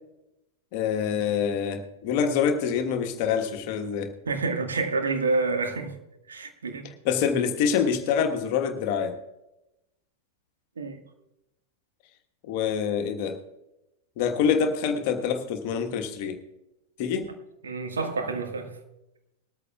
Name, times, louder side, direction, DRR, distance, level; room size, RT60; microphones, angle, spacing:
voice 1, 0.7-4.1 7.0-9.1 12.5-13.4 14.2-16.4 17.0-17.3, left 7 dB, 45° left, 6 dB, 1.3 m, -26 dB
voice 2, 4.2-6.0 6.3-6.9 10.8-11.0 17.6-18.7, right 3 dB, 70° right, 4 dB, 1.7 m, -28 dB
20.5 x 13.5 x 2.4 m, 0.95 s
figure-of-eight pair, 90°, 0 cm